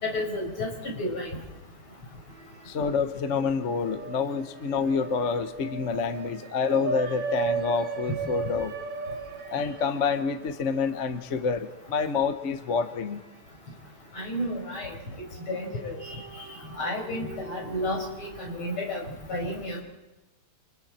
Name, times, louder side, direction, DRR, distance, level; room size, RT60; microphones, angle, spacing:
voice 1, 0.0-0.7 1.0-1.3 14.2-14.9 15.5-15.9 16.8-19.0 19.3-19.8, left 1 dB, 80° left, 0 dB, 6.0 m, -31 dB
sound 1, 2.3-3.1 3.4-13.7 14.2-14.3 15.4-18.8, right 5 dB, 60° right, 2.2 m, -38 dB
voice 2, 2.7-8.7 9.5-13.2, left 5 dB, 40° left, 8 dB, 1.2 m, -28 dB
29.5 x 27.5 x 4.3 m, 1.1 s
omnidirectional pair, 2.3 m